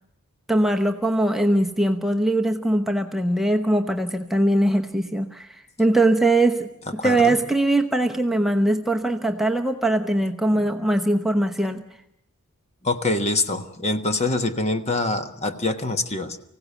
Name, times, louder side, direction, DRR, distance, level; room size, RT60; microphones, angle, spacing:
voice 1, 0.5-11.8, right 1 dB, ahead, 3 dB, 0.9 m, -21 dB
voice 2, 7.0-7.3 10.5-10.6 12.8-16.4, left 2 dB, 30° left, 8 dB, 1.3 m, -25 dB
25.0 x 16.5 x 8.3 m, 0.77 s
head